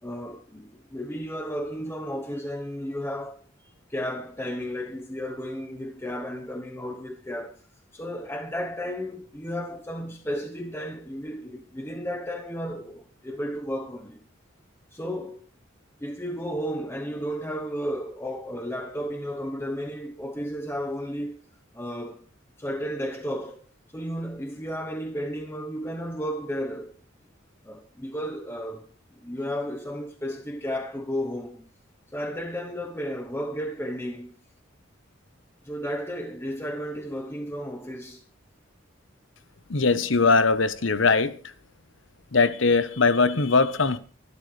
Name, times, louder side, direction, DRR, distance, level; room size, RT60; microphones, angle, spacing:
voice 1, 0.0-3.4 3.9-7.6 7.9-14.2 14.9-15.4 16.0-21.4 21.7-22.2 22.6-23.6 23.9-26.9 27.6-28.9 29.1-31.6 32.1-34.3 35.6-38.2, equal, 10° left, 1.0 m, -33 dB
voice 2, 39.7-41.4 42.3-44.0, left 4 dB, 70° left, 1.1 m, -21 dB
24.0 x 12.0 x 3.4 m
head